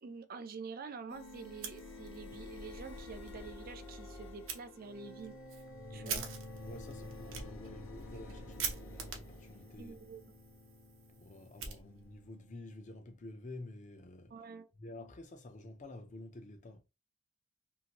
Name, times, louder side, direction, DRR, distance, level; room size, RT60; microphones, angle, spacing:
voice 1, 0.0-5.3 5.9-6.3 9.8-10.2 14.3-14.7, right 5 dB, 50° right, 0.4 m, -47 dB
sound 1, 1.1-12.7, left 2 dB, 85° left, 0.7 m, -49 dB
Fire, 1.5-2.4 2.7-2.8 3.2-3.3 4.5-4.6 5.2-12.3, right 6 dB, 85° right, 0.8 m, -45 dB
voice 2, 5.9-6.3 6.6-10.0 11.2-14.3 14.8-16.8, left 2 dB, 40° left, 0.6 m, -50 dB
2.8 x 2.5 x 2.9 m
head